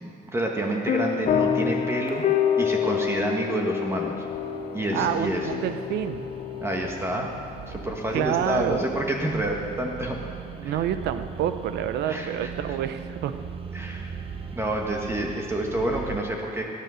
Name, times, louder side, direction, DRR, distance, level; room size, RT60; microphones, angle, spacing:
voice 1, 0.0-4.3 4.7-5.5 6.6-7.3 7.7-10.2 10.6-10.8 12.0-12.8 13.7-14.2 14.5-16.8, right 1 dB, 15° right, 1 dB, 1.5 m, -28 dB
sound 1, 0.8-16.2, right 6 dB, 35° right, 0.9 m, -41 dB
sound 2, 0.9-9.0, left 8 dB, 45° left, 0.8 m, -28 dB
voice 2, 4.9-6.3 8.1-8.9 10.6-13.4, right 10 dB, 80° right, 11 dB, 0.8 m, -28 dB
19.5 x 9.8 x 6.4 m, 2.5 s
cardioid pair, 110°, 17 cm